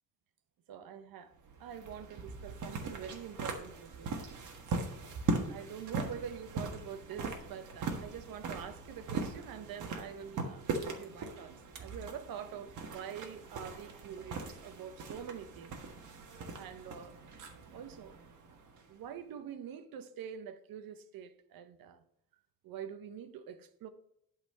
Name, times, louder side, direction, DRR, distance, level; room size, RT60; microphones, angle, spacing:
voice 1, 0.7-1.3 1.6-4.2 5.5-15.8 16.6-17.1 17.7-18.2 18.9-22.0 22.6-23.9, right 8 dB, 85° right, 0.9 m, -45 dB
sound 1, 1.4-19.1, right 4 dB, 60° right, 1.5 m, -40 dB
11.5 x 4.2 x 5.3 m
cardioid pair, 160°, 34 cm